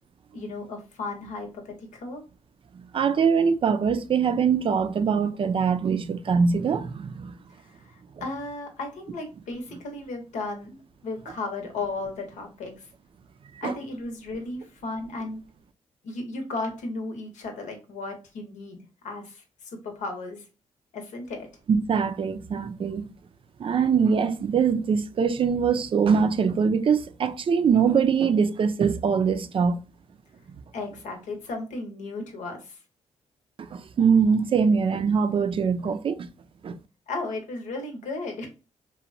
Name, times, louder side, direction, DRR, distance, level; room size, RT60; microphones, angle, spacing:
voice 1, 0.3-2.2 7.6-12.9 13.6-15.4 16.0-18.8 19.0-20.5 20.9-21.5 30.7-32.8 37.1-38.5, left 2 dB, 85° left, 0.8 m, -35 dB
voice 2, 2.9-7.3 13.6-13.7 21.7-23.1 23.6-29.8 33.7-36.3 36.6-36.8, right 6 dB, 45° right, 0.4 m, -23 dB
3.0 x 2.1 x 2.5 m
cardioid pair, 65°, 12 cm